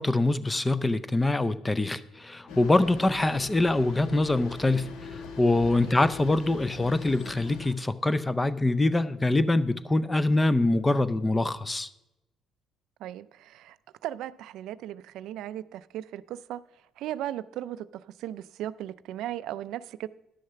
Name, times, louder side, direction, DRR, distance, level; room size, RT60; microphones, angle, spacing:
voice 1, 0.0-11.9, left 2 dB, 15° left, 15 dB, 0.5 m, -24 dB
sound 1, 2.5-7.7, left 5 dB, 85° left, 1.1 m, -42 dB
voice 2, 13.0-13.8 14.0-16.6 17.0-20.1, right 12 dB, 75° right, 15 dB, 0.3 m, -37 dB
11.0 x 6.5 x 5.7 m, 0.91 s
cardioid pair, 115°, 0 cm